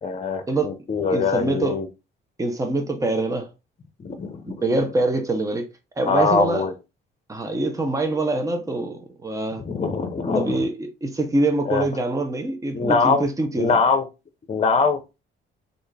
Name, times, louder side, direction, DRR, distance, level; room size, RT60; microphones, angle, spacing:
voice 1, 0.0-1.9 4.0-4.5 6.1-6.7 9.6-10.6 11.7-11.9 12.7-13.2 13.6-14.0 14.5-15.0, left 4 dB, 30° left, 0.8 m, -22 dB
voice 2, 1.1-1.8 2.4-3.5 4.5-5.7 6.0-6.7 7.3-9.6 10.3-13.8, right 2 dB, 15° right, 0.8 m, -24 dB
3.4 x 2.6 x 3.3 m
cardioid pair, 90°, 20 cm